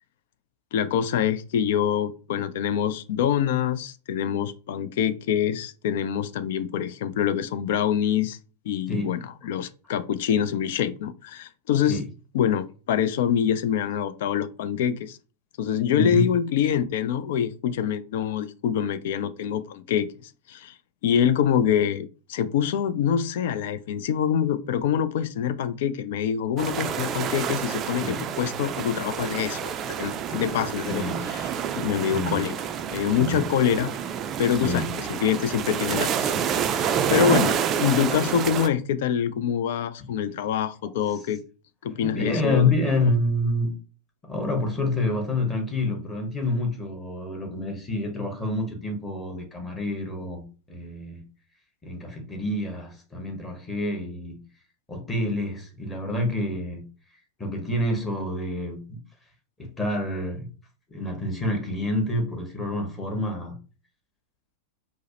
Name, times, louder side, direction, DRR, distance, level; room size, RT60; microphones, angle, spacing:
voice 1, 0.7-8.4 8.7-12.0 12.3-15.2 15.6-20.7 21.0-31.0 31.3-31.4 31.7-32.5 32.9-33.9 34.4-36.3 36.7-41.4 41.8-42.7 43.0-43.1, left 9 dB, 55° left, 0.4 m, -25 dB
sound 1, 26.6-38.7, right 8 dB, 30° right, 0.4 m, -28 dB
voice 2, 30.9-31.2 32.1-32.4 33.2-33.4 34.6-34.9 42.0-43.8 44.2-51.2 51.8-54.4 54.9-56.9 57.4-59.0 59.6-60.5 60.9-63.6, left 1 dB, 15° left, 1.1 m, -28 dB
4.6 x 2.0 x 2.8 m
figure-of-eight pair, 90°, 0 cm